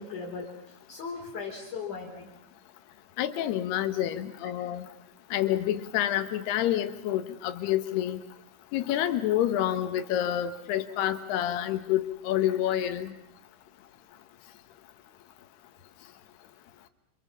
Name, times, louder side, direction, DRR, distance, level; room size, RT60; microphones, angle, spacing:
voice 1, 0.0-2.3 12.8-13.0, left 5 dB, 40° left, -3 dB, 4.8 m, -38 dB
voice 2, 3.2-4.8 5.3-8.2 8.7-13.1, left 12 dB, 70° left, 10 dB, 2.8 m, -28 dB
28.5 x 28.0 x 7.2 m, 0.74 s
omnidirectional pair, 6.0 m